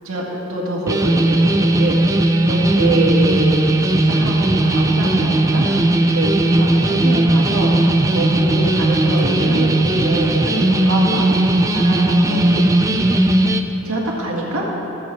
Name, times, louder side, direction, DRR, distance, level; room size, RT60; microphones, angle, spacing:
voice 1, 0.5-2.0 2.4-5.7 6.1-7.8 8.1-12.7 13.8-14.7, right 1 dB, 85° right, -4 dB, 1.9 m, -24 dB
sound 1, 0.9-13.6, right 1 dB, 15° right, 0.4 m, -17 dB
22.0 x 7.8 x 3.3 m, 2.9 s
head